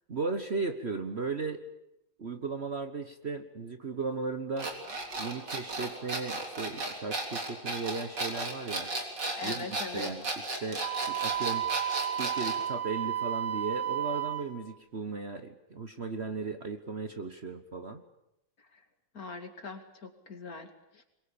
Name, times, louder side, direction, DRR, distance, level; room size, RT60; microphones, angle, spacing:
voice 1, 0.1-1.6 2.2-4.7 5.2-8.9 9.4-9.6 9.9-10.3 10.6-11.7 12.1-18.0, right 4 dB, 40° right, 8 dB, 1.3 m, -36 dB
sound 1, 4.6-12.6, right 2 dB, 65° right, 4.3 m, -34 dB
voice 2, 9.4-10.1 18.6-18.8 19.1-21.0, left 4 dB, 50° left, 6 dB, 2.9 m, -42 dB
Wind instrument woodwind instrument, 10.8-14.5, right 10 dB, 85° right, 4.7 m, -32 dB
24.0 x 22.0 x 8.7 m, 0.85 s
omnidirectional pair, 2.0 m